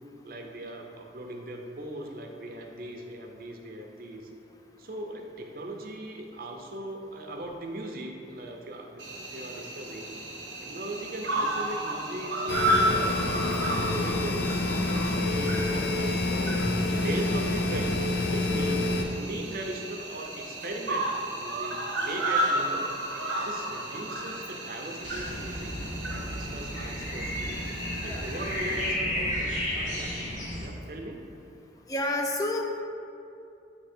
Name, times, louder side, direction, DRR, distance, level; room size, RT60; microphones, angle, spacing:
voice 1, 0.2-4.3 4.8-10.1 10.6-22.8 23.4-25.7 26.0-30.1 30.6-31.2, right 1 dB, 50° right, 2 dB, 0.6 m, -39 dB
Cricket, 9.0-28.9, right 1 dB, 85° right, 0.9 m, -33 dB
sound 1, 12.5-19.0, left 2 dB, 75° left, 0.5 m, -27 dB
sound 2, 25.0-30.7, left 1 dB, 40° left, 0.8 m, -33 dB
voice 2, 31.9-32.8, left 1 dB, 20° left, 2 dB, 0.3 m, -29 dB
7.9 x 2.8 x 4.3 m, 2.6 s
head